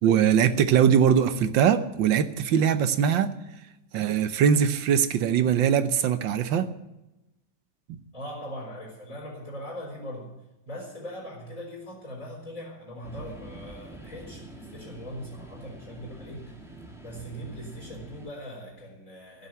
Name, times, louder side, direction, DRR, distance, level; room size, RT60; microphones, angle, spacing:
voice 1, 0.0-3.3 3.9-6.7, right 8 dB, 80° right, 12 dB, 1.6 m, -21 dB
voice 2, 8.1-16.6 17.0-19.5, equal, 45° left, -2 dB, 4.5 m, -40 dB
sound 1, 13.0-18.3, right 2 dB, ahead, 1.8 m, -45 dB
15.5 x 7.2 x 9.4 m, 0.96 s
omnidirectional pair, 2.0 m